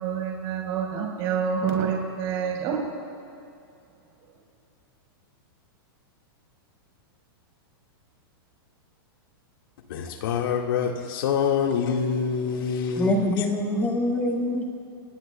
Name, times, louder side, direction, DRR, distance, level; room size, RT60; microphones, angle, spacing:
voice 1, 0.0-2.8, right 7 dB, 35° right, 4.2 m, -27 dB
voice 2, 9.9-13.5, left 6 dB, 65° left, 1.7 m, -26 dB
voice 3, 12.9-14.6, left 1 dB, 15° left, 1.8 m, -24 dB
29.5 x 18.5 x 2.2 m
supercardioid pair, 160°, 13 cm